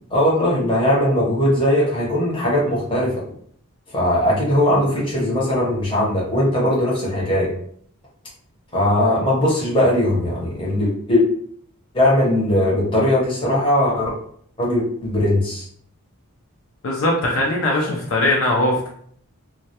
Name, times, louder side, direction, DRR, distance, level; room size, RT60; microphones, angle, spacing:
voice 1, 0.1-3.1 3.9-7.5 8.7-11.2 11.9-14.1 14.6-15.7, left 1 dB, 25° left, -5 dB, 0.7 m, -19 dB
voice 2, 16.8-18.9, left 1 dB, 60° left, -2 dB, 0.4 m, -20 dB
2.2 x 2.1 x 2.8 m, 0.62 s
head